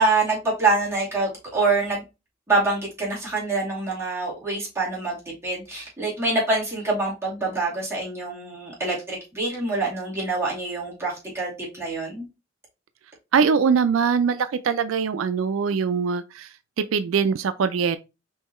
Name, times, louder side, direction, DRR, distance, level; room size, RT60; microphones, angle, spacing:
voice 1, 0.0-2.0 2.5-5.2 5.4-12.3, right 3 dB, 15° right, 2.6 m, -25 dB
voice 2, 13.3-18.0, right 6 dB, 85° right, 0.4 m, -22 dB
5.5 x 3.1 x 3.0 m
head